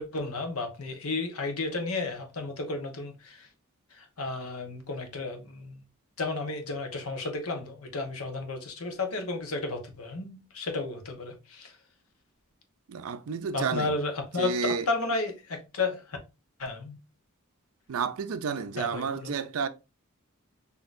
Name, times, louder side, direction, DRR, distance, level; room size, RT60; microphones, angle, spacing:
voice 1, 0.0-3.5 3.9-5.8 6.2-11.8 13.5-16.2 16.6-17.0 18.8-19.4, left 3 dB, 90° left, 1.0 m, -33 dB
voice 2, 12.9-14.0 14.4-14.9 17.9-19.7, right 5 dB, 75° right, 0.4 m, -31 dB
6.1 x 2.8 x 2.5 m
head